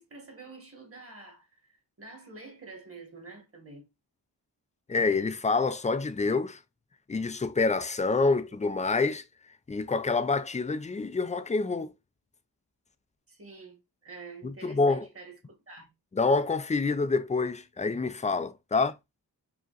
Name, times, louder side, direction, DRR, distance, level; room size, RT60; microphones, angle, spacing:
voice 1, 0.0-3.8 8.5-8.6 13.3-15.4 15.7-15.9, right 3 dB, 30° right, 1.5 m, -48 dB
voice 2, 4.9-6.6 7.1-9.2 9.7-11.9 14.4-15.1 16.1-18.9, left 3 dB, 20° left, 0.4 m, -27 dB
4.9 x 2.9 x 2.4 m
wide cardioid pair, 145°, 42 cm